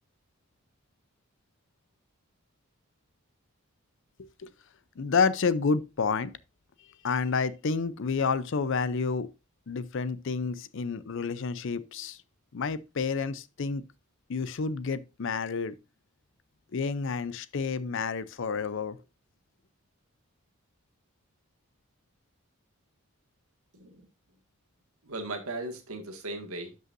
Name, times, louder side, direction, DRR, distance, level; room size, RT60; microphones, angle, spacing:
voice 1, 5.0-6.3 7.0-9.3 9.7-12.2 12.5-13.8 14.3-15.7 16.7-19.0, left 5 dB, 55° left, 0.5 m, -29 dB
voice 2, 23.7-24.1 25.0-26.7, right 2 dB, 75° right, 1.8 m, -37 dB
12.0 x 5.5 x 2.5 m
head